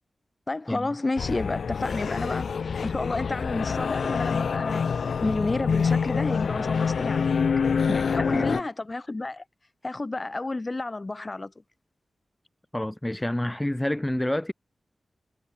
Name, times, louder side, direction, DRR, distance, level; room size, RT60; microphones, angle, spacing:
voice 1, 0.5-4.9 5.2-7.2 7.9-9.4 9.8-11.5, left 2 dB, 30° left, 1.8 m, -31 dB
sound 1, 1.2-8.6, left 6 dB, 90° left, 0.7 m, -26 dB
voice 2, 8.3-8.6 12.7-14.5, left 1 dB, 10° left, 1.6 m, -28 dB
wide cardioid pair, 125°, 0 cm